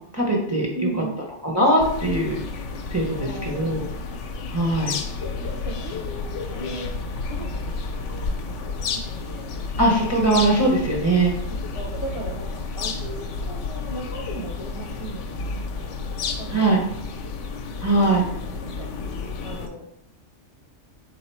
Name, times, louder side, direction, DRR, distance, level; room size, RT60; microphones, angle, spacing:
voice 1, 0.1-0.7 1.4-2.4 2.9-3.8 4.5-5.0 9.8-11.3 16.5-16.8 17.8-18.2, right 1 dB, 20° right, -1 dB, 0.5 m, -20 dB
voice 2, 0.7-1.1 3.2-4.0 5.2-6.9 7.2-9.5 11.7-15.3 15.7-15.9 16.2-16.8 17.2-17.4 17.8-18.2 18.6-18.9 19.4-19.8, right 1 dB, 35° left, -2 dB, 0.6 m, -37 dB
sound 1, 1.8-19.7, left 4 dB, 80° left, 0.9 m, -31 dB
3.7 x 2.8 x 4.4 m, 0.73 s
omnidirectional pair, 1.2 m